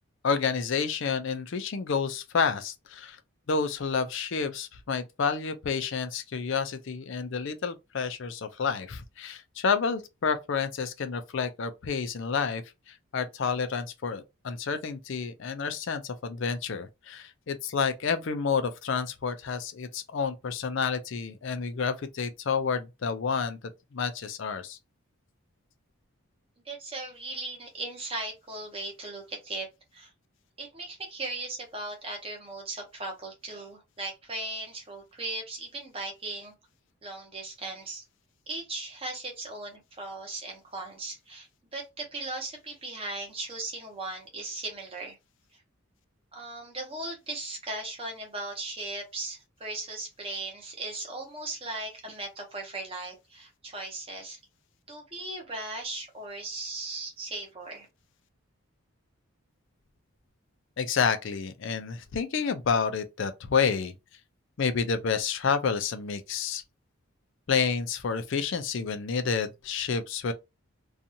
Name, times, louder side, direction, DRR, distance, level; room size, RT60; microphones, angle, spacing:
voice 1, 0.2-3.2 3.5-23.6 23.9-24.8 60.8-63.9 64.6-66.6 67.5-70.3, left 5 dB, 55° left, 0.4 m, -29 dB
voice 2, 26.6-29.7 29.9-30.1 30.6-36.5 37.0-38.0 38.5-41.5 41.7-45.2 45.5-45.6 46.3-54.4 54.9-57.9, right 2 dB, 25° right, 0.9 m, -37 dB
2.6 x 2.3 x 2.7 m
head